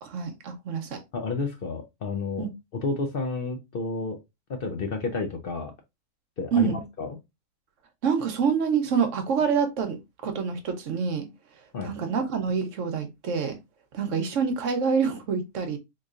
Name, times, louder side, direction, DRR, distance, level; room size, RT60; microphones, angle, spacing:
voice 1, 0.0-1.0 2.4-2.5 6.5-6.8 8.0-11.3 11.8-13.6 13.9-15.8, right 6 dB, 60° right, 1.0 m, -26 dB
voice 2, 1.1-2.5 2.8-4.2 4.5-5.7 6.4-7.1 11.7-11.9, left 3 dB, 60° left, 0.6 m, -31 dB
3.9 x 3.1 x 2.4 m
omnidirectional pair, 1.5 m